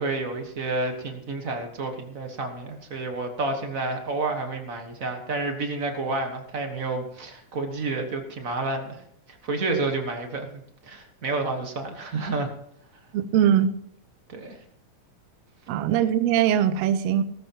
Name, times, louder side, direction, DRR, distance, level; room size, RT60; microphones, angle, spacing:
voice 1, 0.0-9.0 9.4-12.5 14.3-14.6, right 3 dB, 45° right, 1.1 m, -30 dB
voice 2, 13.1-13.7 15.7-17.2, right 9 dB, 75° right, 1.7 m, -21 dB
17.5 x 14.0 x 3.0 m
omnidirectional pair, 3.4 m